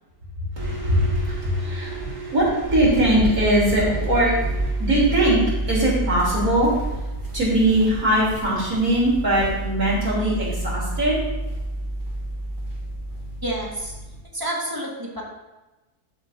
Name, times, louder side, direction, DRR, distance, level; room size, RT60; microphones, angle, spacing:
voice 1, 0.5-11.2, right 1 dB, 55° right, -6 dB, 3.9 m, -21 dB
sound 1, 2.6-14.2, right 1 dB, 30° right, 1.3 m, -30 dB
voice 2, 13.4-14.0 14.3-15.2, right 1 dB, 15° right, -3 dB, 1.6 m, -29 dB
13.0 x 7.3 x 2.7 m, 1.1 s
omnidirectional pair, 1.8 m